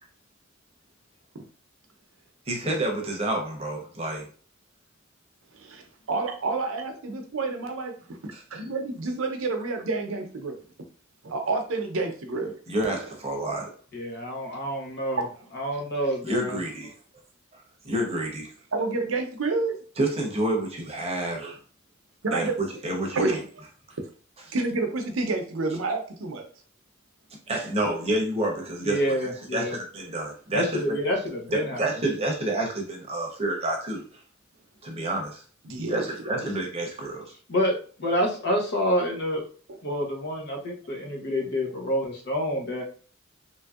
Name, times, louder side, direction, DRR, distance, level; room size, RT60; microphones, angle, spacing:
voice 1, 2.5-4.3 8.3-8.6 12.7-13.7 16.2-16.9 17.5-18.5 20.0-21.6 22.3-23.4 27.5-31.0 31.5-34.0 34.8-35.4 35.9-37.3, right 1 dB, 30° right, 1 dB, 0.8 m, -29 dB
voice 2, 5.5-7.9 8.2-10.6 11.2-12.6 13.0-13.1 15.2-15.3 18.7-19.7 22.2-22.6 23.1-23.4 24.5-26.5 35.6-36.0, right 3 dB, 70° right, 5 dB, 0.6 m, -29 dB
voice 3, 13.9-15.3 15.5-16.6 28.8-29.8 30.5-31.8 37.5-39.4 39.8-42.8, equal, 55° left, 1 dB, 0.8 m, -28 dB
3.0 x 2.6 x 2.3 m, 0.41 s
head